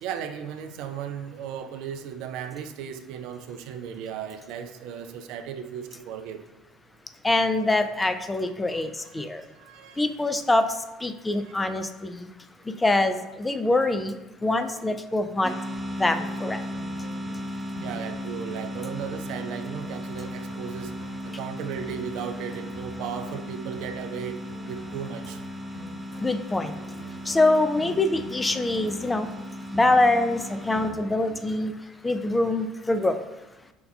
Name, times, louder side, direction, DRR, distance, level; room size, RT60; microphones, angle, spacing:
voice 1, 0.0-6.4 8.7-10.1 11.4-11.6 17.8-20.9 21.2-24.4 24.7-25.4, right 8 dB, 65° right, 7 dB, 0.3 m, -36 dB
voice 2, 7.2-8.9 9.1-9.4 10.0-10.7 11.0-12.3 12.8-14.1 14.4-15.5 16.0-16.6 26.2-26.7 27.3-29.3 29.7-31.7 32.0-33.2, left 2 dB, 15° left, 9 dB, 0.4 m, -24 dB
sound 1, 15.4-30.9, equal, 15° right, 0.7 m, -36 dB
sound 2, 15.7-31.7, left 1 dB, 90° left, 1.2 m, -47 dB
5.3 x 2.3 x 3.5 m, 1.0 s
hypercardioid pair, 65°, 0 cm